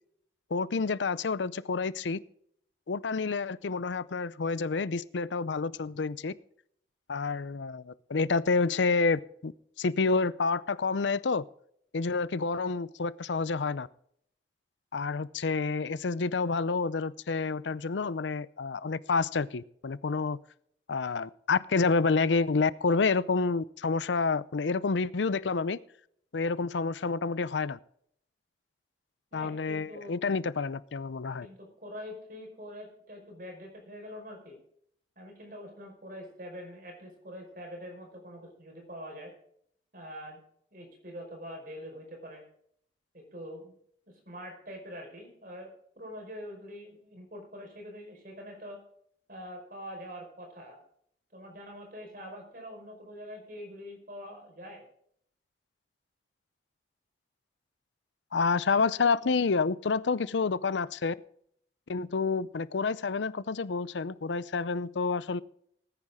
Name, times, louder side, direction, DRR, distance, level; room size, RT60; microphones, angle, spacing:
voice 1, 0.5-2.2 2.9-6.3 7.1-9.5 9.8-11.4 11.9-13.9 14.9-20.4 20.9-25.8 26.3-27.8 29.3-31.5 58.3-61.1 61.9-65.4, left 4 dB, 90° left, 18 dB, 0.6 m, -29 dB
voice 2, 29.3-30.1 31.4-34.6 35.2-39.3 39.9-40.4 40.7-42.4 43.1-43.7 44.3-45.7 46.0-48.8 49.3-50.8 51.3-54.9, equal, 50° right, 2 dB, 5.2 m, -44 dB
19.0 x 9.7 x 3.7 m, 0.67 s
head